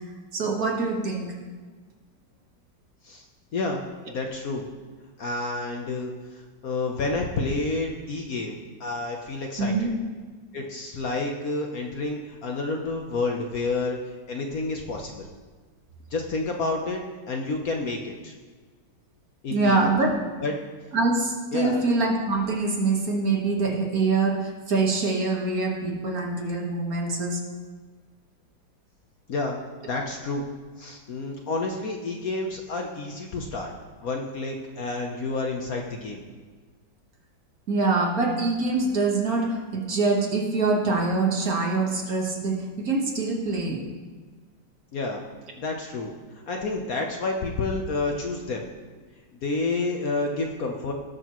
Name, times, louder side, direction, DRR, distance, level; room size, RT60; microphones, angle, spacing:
voice 1, 0.3-1.3 9.6-9.9 19.5-20.2 20.9-27.4 37.7-43.8, right 3 dB, 50° right, 0 dB, 1.7 m, -24 dB
voice 2, 3.5-4.7 5.2-9.9 10.5-14.0 14.3-15.1 16.1-17.0 17.3-18.3 19.4-19.9 20.4-20.5 21.5-21.8 29.3-30.4 30.8-33.7 34.0-36.2 44.9-45.2 45.6-46.1 46.5-48.6 49.3-50.9, left 3 dB, 55° left, 2 dB, 1.1 m, -29 dB
18.5 x 6.6 x 3.0 m, 1.4 s
omnidirectional pair, 2.1 m